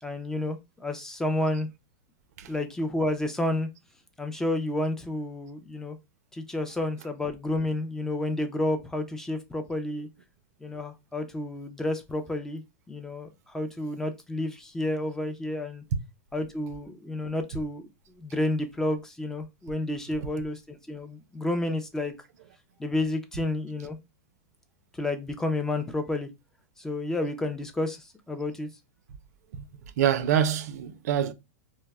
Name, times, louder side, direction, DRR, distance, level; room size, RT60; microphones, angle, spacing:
voice 1, 0.0-1.7 2.5-3.7 4.2-6.0 6.3-10.1 10.6-12.6 12.9-15.8 16.3-17.9 18.2-22.1 22.8-24.0 24.9-26.3 26.8-28.7, left 1 dB, 5° left, 0.3 m, -30 dB
voice 2, 30.0-31.3, right 9 dB, 70° right, 0.4 m, -26 dB
2.1 x 2.0 x 3.3 m
supercardioid pair, 145°, 9 cm